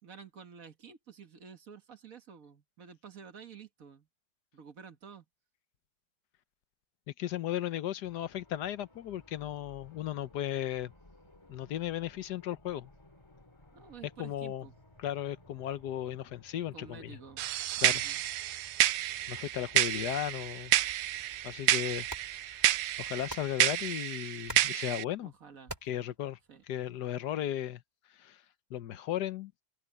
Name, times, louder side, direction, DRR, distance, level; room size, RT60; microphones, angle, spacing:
voice 1, 0.0-4.1 4.5-5.3 13.7-14.7 16.7-17.5 17.8-18.2 25.2-25.8 26.5-26.6, right 7 dB, 60° right, 1.8 m, -51 dB
voice 2, 7.2-10.9 11.5-12.9 14.2-14.7 15.0-17.2 17.8-18.0 19.3-20.7 21.4-22.1 22.3-25.3 25.8-26.4 26.7-27.8 28.1-28.4 28.7-29.5, left 11 dB, 90° left, 1.4 m, -36 dB
sound 1, 8.0-24.0, left 1 dB, 15° left, 2.2 m, -59 dB
sound 2, 17.4-25.0, right 14 dB, 80° right, 1.1 m, -30 dB
sound 3, 20.9-26.9, right 1 dB, 10° right, 3.6 m, -50 dB
omnidirectional pair, 1.7 m